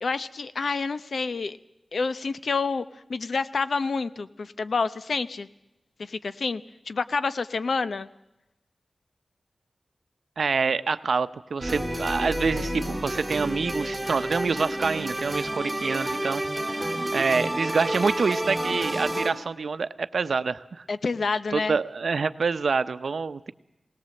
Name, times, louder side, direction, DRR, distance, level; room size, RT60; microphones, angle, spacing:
voice 1, 0.0-1.6 1.9-2.8 3.1-5.5 6.0-8.1 20.9-21.8, left 4 dB, 80° left, 13 dB, 0.7 m, -28 dB
voice 2, 10.4-16.4 17.1-20.8 21.5-23.5, right 4 dB, 85° right, 12 dB, 0.7 m, -26 dB
sound 1, 11.6-19.3, right 1 dB, 5° right, 2.9 m, -30 dB
20.5 x 18.5 x 7.7 m, 0.92 s
wide cardioid pair, 85°, 0 cm